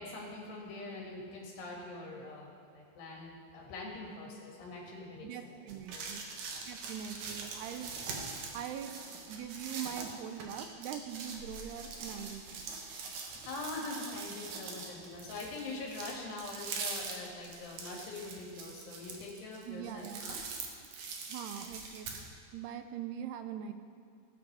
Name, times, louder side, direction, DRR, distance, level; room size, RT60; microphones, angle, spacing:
voice 1, 0.0-5.5 5.9-6.1 13.3-20.4, left 2 dB, 75° left, -2 dB, 4.2 m, -43 dB
voice 2, 5.2-6.2 6.7-7.9 8.5-12.7 19.7-20.4 21.3-22.1 22.5-23.7, right 9 dB, 85° right, 8 dB, 2.6 m, -42 dB
Crunching Paper Dry, 5.7-22.3, right 4 dB, 65° right, 2.6 m, -43 dB
20.0 x 10.0 x 3.5 m, 2.3 s
omnidirectional pair, 4.8 m